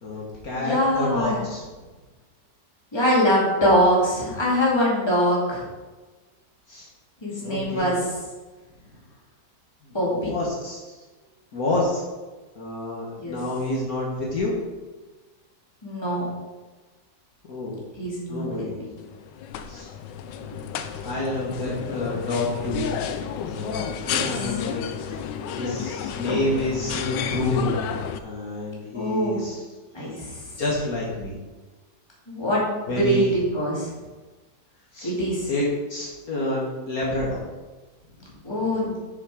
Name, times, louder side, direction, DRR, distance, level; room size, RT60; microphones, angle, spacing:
voice 1, 0.0-1.6 6.7-6.9 7.4-7.9 9.8-10.9 11.5-12.0 12.6-14.5 17.5-17.8 18.3-18.9 19.7-19.9 20.4-20.7 21.0-22.9 23.4-25.3 25.6-27.8 28.2-29.6 30.6-31.4 32.9-33.3 34.9-35.1 35.5-37.4 38.3-38.4, left 2 dB, 55° left, -5 dB, 1.9 m, -28 dB
voice 2, 0.5-1.4 2.9-5.6 7.2-8.0 9.9-10.3 13.2-13.4 15.8-16.3 18.0-18.4 24.1-24.3 26.3-26.4 28.9-29.4 29.9-30.6 32.3-33.9 35.0-35.5 38.4-39.0, equal, 15° left, -6 dB, 2.4 m, -23 dB
sound 1, 19.0-28.2, left 8 dB, 85° left, 1.3 m, -31 dB
7.1 x 6.6 x 4.9 m, 1.2 s
omnidirectional pair, 1.9 m